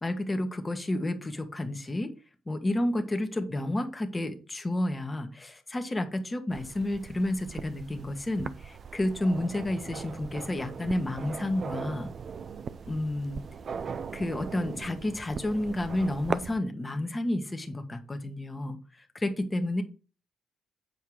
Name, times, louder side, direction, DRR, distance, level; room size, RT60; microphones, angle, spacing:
voice 1, 0.0-2.1 2.5-12.1 12.9-13.4 14.1-19.8, left 1 dB, 20° left, 6 dB, 1.4 m, -31 dB
sound 1, 6.5-16.6, right 6 dB, 50° right, 0.5 m, -39 dB
8.1 x 4.6 x 4.8 m, 0.36 s
cardioid pair, 90°, 0 cm